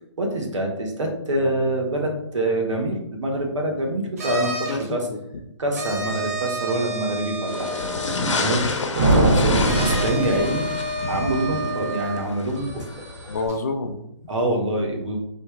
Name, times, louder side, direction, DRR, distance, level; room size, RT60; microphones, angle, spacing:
voice 1, 0.2-5.1 5.6-7.7 8.4-10.7 11.1-13.0 14.3-15.2, right 1 dB, 85° right, 1 dB, 1.3 m, -25 dB
sound 1, 4.2-4.9 5.7-8.8 9.6-13.6, right 2 dB, 30° right, 0.7 m, -31 dB
voice 2, 4.7-5.4 8.5-8.8 11.7-11.9 13.3-14.3, left 3 dB, 35° left, 6 dB, 0.4 m, -30 dB
sound 2, 7.5-13.5, left 3 dB, 80° left, 0.8 m, -30 dB
sound 3, 8.9-11.2, right 1 dB, 55° right, 1.5 m, -21 dB
3.3 x 2.9 x 4.4 m, 0.81 s
hypercardioid pair, 170°, 15 cm